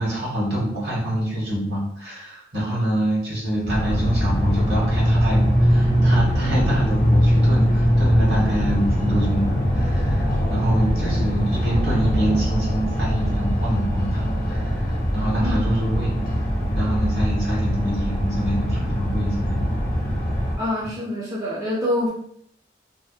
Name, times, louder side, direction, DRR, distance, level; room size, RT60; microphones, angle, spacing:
voice 1, 0.0-16.1 16.7-19.7, equal, 65° right, -5 dB, 1.0 m, -26 dB
sound 1, 3.7-20.6, equal, 55° left, 0.7 m, -21 dB
voice 2, 20.6-22.1, left 1 dB, 20° right, -7 dB, 0.4 m, -25 dB
2.6 x 2.0 x 2.3 m, 0.68 s
head